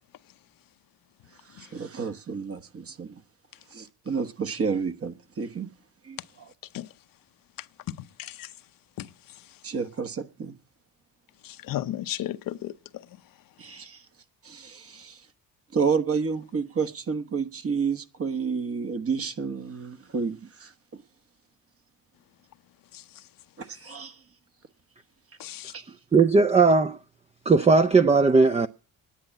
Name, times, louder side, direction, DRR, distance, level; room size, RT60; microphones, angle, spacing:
voice 1, 1.5-3.1 3.7-5.7 6.0-6.5 9.6-10.5 13.6-14.0 14.4-15.2 15.7-21.0 23.6-24.2 25.7-25.9, right 5 dB, 35° right, 1.2 m, -30 dB
voice 2, 7.9-8.5 9.0-9.1 11.4-12.7 22.9-23.0 25.4-25.7, left 13 dB, 60° left, 0.7 m, -34 dB
voice 3, 26.1-27.0 27.5-28.7, right 4 dB, 15° right, 0.5 m, -18 dB
10.0 x 8.6 x 8.9 m
supercardioid pair, 75°, 39 cm